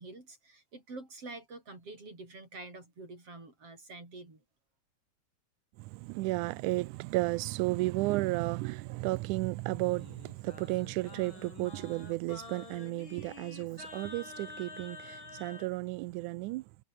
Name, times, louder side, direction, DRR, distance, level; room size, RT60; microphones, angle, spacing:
voice 1, 0.0-4.4, right 3 dB, 40° right, 8.4 m, -47 dB
voice 2, 5.8-16.7, right 20 dB, 85° right, 1.8 m, -33 dB
Singing, 9.6-15.7, left 4 dB, 35° left, 4.9 m, -48 dB
omnidirectional pair, 4.1 m